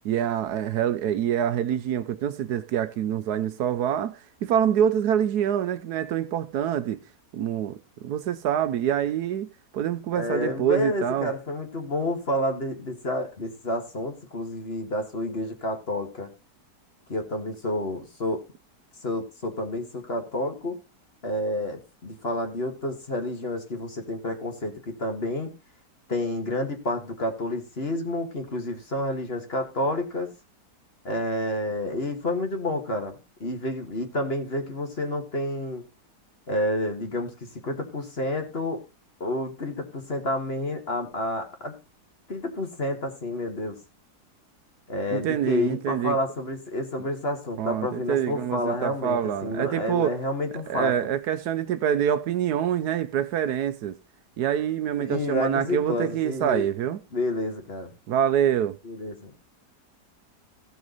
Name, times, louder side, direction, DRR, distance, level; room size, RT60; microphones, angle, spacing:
voice 1, 0.0-7.0 7.3-7.8 8.0-9.5 9.7-11.3 45.1-46.2 47.6-50.1 50.5-53.9 54.4-57.0 58.1-58.8, right 9 dB, 75° right, 1.2 m, -26 dB
voice 2, 10.1-16.3 17.1-18.4 19.0-20.7 21.2-25.5 26.1-30.3 31.0-33.2 33.4-35.8 36.5-38.8 39.2-41.7 42.3-43.8 44.9-50.9 55.0-56.7 57.1-57.9 58.8-59.3, left 1 dB, 35° left, 2.0 m, -29 dB
15.5 x 6.2 x 3.9 m
omnidirectional pair, 1.8 m